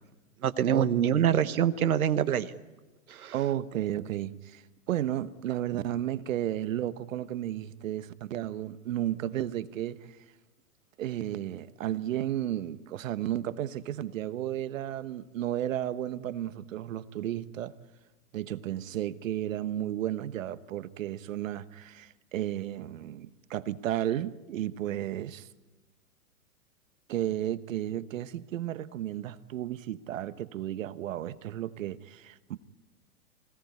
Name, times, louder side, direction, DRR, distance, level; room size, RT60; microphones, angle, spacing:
voice 1, 0.4-2.5 3.1-3.3, right 9 dB, 85° right, 1.1 m, -25 dB
voice 2, 1.2-1.5 3.3-10.2 11.0-17.8 18.3-25.5 27.1-32.6, right 12 dB, 65° right, 1.2 m, -33 dB
25.5 x 17.5 x 9.6 m
hypercardioid pair, 130°, 42 cm